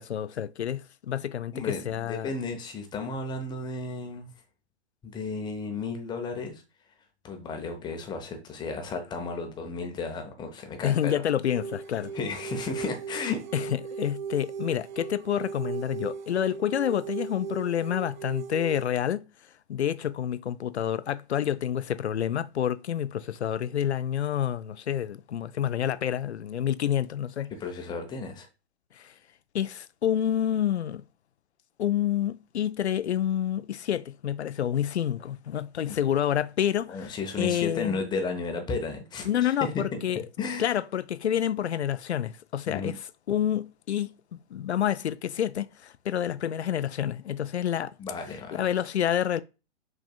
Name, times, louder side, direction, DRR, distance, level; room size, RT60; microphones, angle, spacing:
voice 1, 0.0-2.3 10.8-12.1 13.5-19.3 19.7-27.5 28.9-29.1 29.5-31.0 31.8-38.0 39.3-40.2 40.6-47.9 48.5-49.4, left 10 dB, 75° left, 0.5 m, -28 dB
voice 2, 1.5-4.3 5.0-6.6 7.2-11.1 12.1-13.4 27.6-28.5 35.9-36.0 36.9-40.0 40.4-40.8 42.7-42.9 48.0-48.6, left 4 dB, 15° left, 0.8 m, -33 dB
sound 1, 11.5-18.8, right 6 dB, 45° right, 0.6 m, -37 dB
6.3 x 3.5 x 2.3 m
figure-of-eight pair, 110°, 34 cm